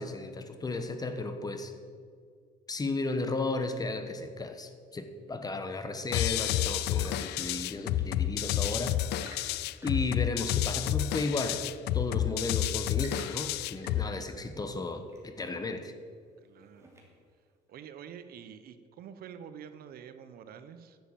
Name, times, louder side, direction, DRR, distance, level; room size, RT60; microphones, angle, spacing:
voice 1, 0.0-1.7 2.7-9.3 9.8-11.6 11.9-15.9, left 3 dB, 20° left, 7 dB, 1.1 m, -34 dB
sound 1, 6.1-14.1, left 12 dB, 80° left, 0.4 m, -30 dB
Chirp tweet / Engine / Tap, 6.3-17.4, right 1 dB, 15° right, 2.9 m, -56 dB
voice 2, 16.4-16.9 17.7-21.0, right 8 dB, 65° right, 11 dB, 0.8 m, -47 dB
11.0 x 7.5 x 7.3 m, 2.1 s
cardioid pair, 110°, 17 cm